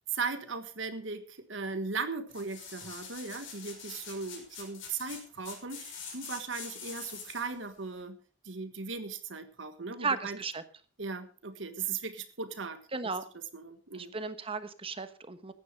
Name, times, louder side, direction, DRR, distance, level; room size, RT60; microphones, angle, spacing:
voice 1, 0.1-8.2 8.4-10.4 11.0-12.8 13.5-14.1, right 4 dB, 70° right, 9 dB, 1.5 m, -38 dB
sound 1, 2.3-7.5 8.0-8.1, left 5 dB, 75° left, 5.8 m, -45 dB
voice 2, 10.0-10.6 12.9-13.2 13.9-15.5, right 4 dB, 30° right, 11 dB, 1.2 m, -35 dB
15.5 x 10.5 x 5.1 m, 0.38 s
head